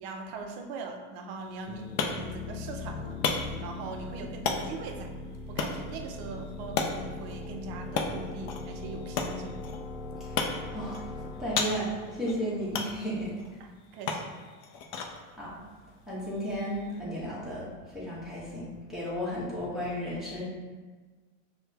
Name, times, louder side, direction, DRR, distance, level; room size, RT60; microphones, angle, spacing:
voice 1, 0.0-5.1 5.5-9.6 13.6-14.3, right 3 dB, 55° right, 4 dB, 0.6 m, -41 dB
sound 1, 1.4-17.0, left 5 dB, 40° left, 0.4 m, -36 dB
sound 2, 1.7-13.2, left 2 dB, 90° left, 0.5 m, -41 dB
voice 2, 11.4-13.3 15.4-15.6 16.1-20.4, equal, ahead, -9 dB, 1.0 m, -34 dB
5.6 x 2.2 x 2.7 m, 1.4 s
supercardioid pair, 140°, 39 cm